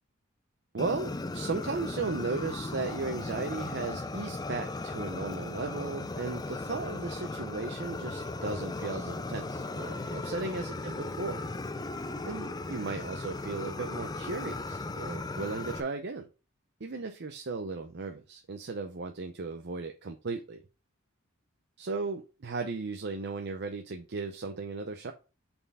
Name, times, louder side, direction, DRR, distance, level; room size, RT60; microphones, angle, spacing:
voice 1, 0.7-11.4 12.3-16.3 16.8-20.6 21.8-25.1, right 3 dB, 55° right, 0.7 m, -36 dB
Fire, 0.8-15.8, left 2 dB, 20° left, 0.4 m, -37 dB
sound 1, 5.2-13.7, right 1 dB, 70° right, 1.9 m, -56 dB
5.6 x 4.4 x 5.3 m
head